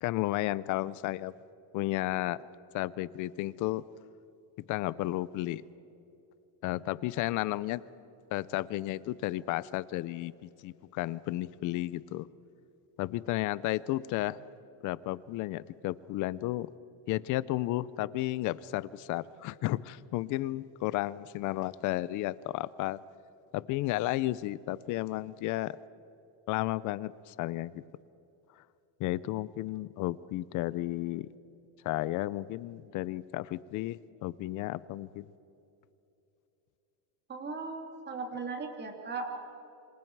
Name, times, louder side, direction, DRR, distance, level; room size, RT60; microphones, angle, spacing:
voice 1, 0.0-1.3 1.7-2.4 2.7-3.8 4.7-5.6 6.6-7.8 8.3-12.3 13.0-14.4 14.8-16.7 17.1-23.0 23.5-25.8 26.5-27.8 29.0-31.3 31.8-35.3, left 16 dB, 40° left, 19 dB, 0.4 m, -33 dB
voice 2, 37.3-39.3, right 4 dB, 20° right, 3 dB, 2.5 m, -37 dB
27.5 x 25.5 x 4.6 m, 2.9 s
cardioid pair, 165°, 48 cm